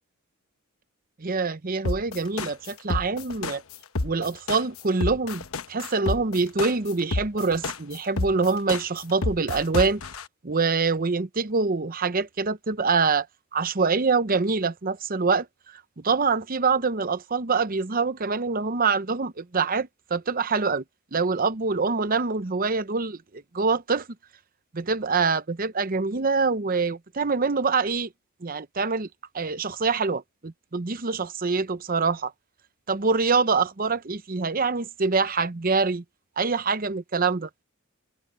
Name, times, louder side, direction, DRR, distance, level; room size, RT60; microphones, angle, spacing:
voice 1, 1.2-3.6 4.0-10.0 10.4-13.3 13.5-15.5 16.0-20.8 21.1-24.1 24.7-28.1 28.4-29.1 29.3-32.3 32.9-36.0 36.4-37.5, right 4 dB, 40° right, 0.8 m, -25 dB
sound 1, 1.8-10.2, left 2 dB, 75° left, 1.1 m, -29 dB
head